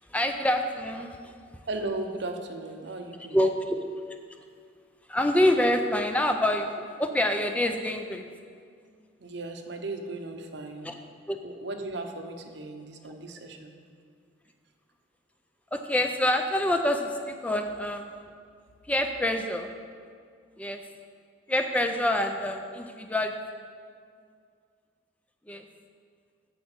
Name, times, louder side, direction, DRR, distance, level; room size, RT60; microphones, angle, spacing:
voice 1, 0.0-1.3 3.3-3.8 5.1-8.2 10.8-10.9 11.3-11.4 15.7-18.1 18.9-19.7 20.6-20.8 21.5-23.3 25.5-25.7, left 1 dB, 5° left, 5 dB, 0.4 m, -26 dB
voice 2, 1.7-3.4 9.2-10.9 11.4-13.7, right 2 dB, 65° right, 5 dB, 0.9 m, -36 dB
7.9 x 6.3 x 7.2 m, 2.2 s
head